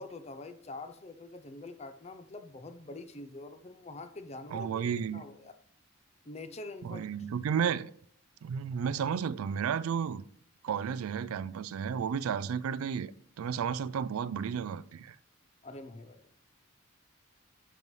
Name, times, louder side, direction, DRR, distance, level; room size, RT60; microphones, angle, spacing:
voice 1, 0.0-5.5 6.2-7.0 15.6-16.3, left 2 dB, 30° left, 0.5 m, -45 dB
voice 2, 4.5-5.2 6.8-7.9 8.4-10.2 10.6-13.1 13.4-15.2, right 7 dB, 90° right, 0.3 m, -32 dB
11.0 x 5.4 x 3.1 m
head